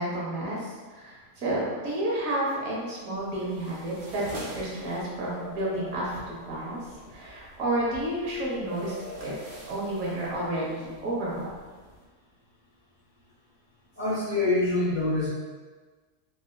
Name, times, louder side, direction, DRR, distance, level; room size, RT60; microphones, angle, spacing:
voice 1, 0.0-6.8 7.1-8.9 9.2-9.3 9.7-11.5, right 1 dB, 85° right, -6 dB, 1.4 m, -31 dB
sound 1, 3.1-12.1, right 1 dB, 60° right, 0.9 m, -47 dB
sound 2, 3.3-3.8 5.2-7.3 8.6-10.7, left 2 dB, 65° left, 1.2 m, -45 dB
voice 2, 14.0-15.3, left 2 dB, 45° left, -9 dB, 0.7 m, -25 dB
4.1 x 2.4 x 2.2 m, 1.4 s
omnidirectional pair, 1.4 m